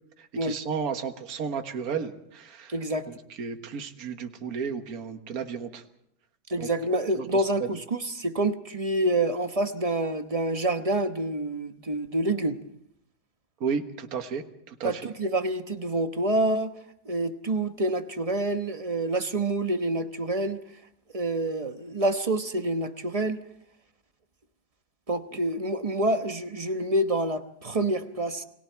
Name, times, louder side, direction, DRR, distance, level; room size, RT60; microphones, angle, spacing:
voice 1, 0.2-2.7 3.4-5.8 6.6-6.7 7.2-7.4 13.6-15.0, right 6 dB, 50° right, 6 dB, 1.8 m, -33 dB
voice 2, 2.7-3.0 6.5-12.6 14.8-16.7 17.0-20.6 21.1-23.4 25.1-28.4, right 1 dB, 25° right, 7 dB, 0.8 m, -27 dB
30.0 x 20.5 x 4.6 m, 0.75 s
omnidirectional pair, 2.1 m